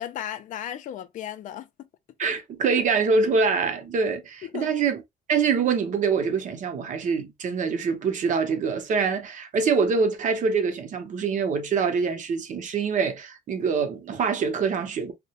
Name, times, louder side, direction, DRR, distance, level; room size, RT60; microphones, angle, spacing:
voice 1, 0.0-1.9 2.2-2.3 2.7-2.8 4.4-4.8, left 11 dB, 50° left, 0.4 m, -36 dB
voice 2, 2.2-5.0 5.3-15.1, right 5 dB, 50° right, 0.7 m, -25 dB
2.3 x 2.1 x 2.8 m
cardioid pair, 110°, 17 cm